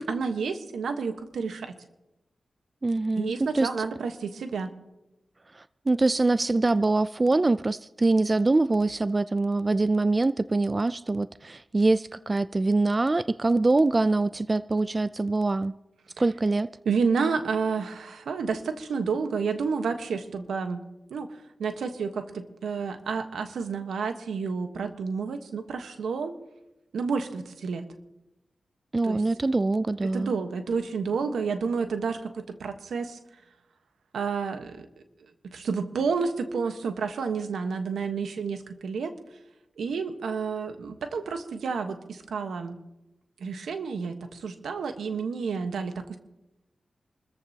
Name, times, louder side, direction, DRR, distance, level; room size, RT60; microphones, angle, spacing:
voice 1, 0.0-1.7 3.2-4.7 16.8-20.8 21.1-21.3 21.6-26.3 26.9-27.8 29.0-29.2 30.0-33.2 34.1-34.8 35.4-39.1 39.8-42.8 43.4-46.2, right 5 dB, 90° right, 1.3 m, -30 dB
voice 2, 2.8-3.7 5.5-15.7 16.2-16.7 28.9-30.3, right 2 dB, 35° right, 0.4 m, -24 dB
27.5 x 14.0 x 2.9 m
cardioid pair, 45°, 0 cm